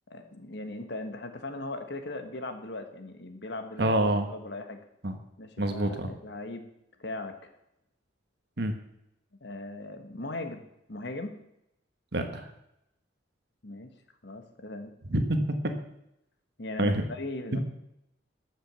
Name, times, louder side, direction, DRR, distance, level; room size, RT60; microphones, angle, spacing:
voice 1, 0.1-3.9 4.3-4.8 5.4-6.6 7.0-7.5 9.4-10.6 10.9-11.4 13.6-13.9 14.2-14.9 16.6-17.6, left 2 dB, 60° left, 7 dB, 1.4 m, -38 dB
voice 2, 3.8-4.3 5.0-5.1 5.6-6.1 8.6-8.7 12.1-12.5 15.1-15.4 16.8-17.0, right 1 dB, 60° right, 6 dB, 1.5 m, -26 dB
12.5 x 6.4 x 6.8 m, 0.82 s
head